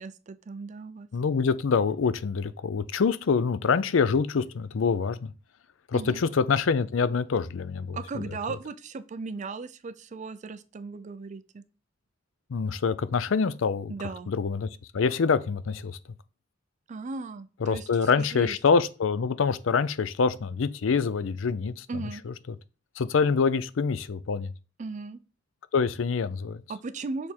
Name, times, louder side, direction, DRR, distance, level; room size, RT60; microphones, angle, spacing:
voice 1, 0.0-1.1 5.9-6.2 7.9-11.6 13.9-14.3 16.9-17.9 18.1-18.6 21.9-22.2 24.8-25.2 26.7-27.3, right 4 dB, 40° right, 0.4 m, -37 dB
voice 2, 1.1-5.3 5.9-8.2 12.5-13.9 14.3-14.7 14.9-16.0 17.6-21.9 22.2-22.3 23.0-24.5 25.7-26.6, left 5 dB, 85° left, 0.5 m, -25 dB
6.4 x 3.5 x 4.4 m
head